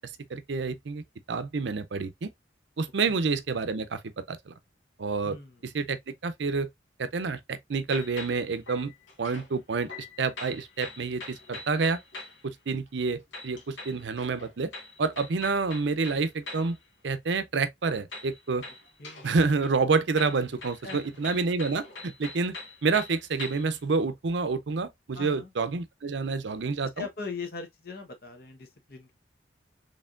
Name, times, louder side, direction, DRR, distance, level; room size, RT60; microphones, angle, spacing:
voice 1, 0.3-1.0 1.3-2.3 2.8-4.5 5.0-5.4 5.6-6.0 6.2-6.7 7.0-8.9 9.2-12.0 12.4-14.7 15.0-16.8 17.0-18.6 19.2-22.6 22.8-27.1, right 4 dB, 70° right, 0.5 m, -28 dB
voice 2, 5.2-5.6 19.0-19.3 20.8-21.2 25.1-25.5 26.6-29.1, left 4 dB, 55° left, 1.1 m, -40 dB
sound 1, 7.9-9.5 9.9-12.4 13.3-16.8 18.1-19.4 19.6-23.8, left 3 dB, 80° left, 1.6 m, -43 dB
4.3 x 3.3 x 2.5 m
head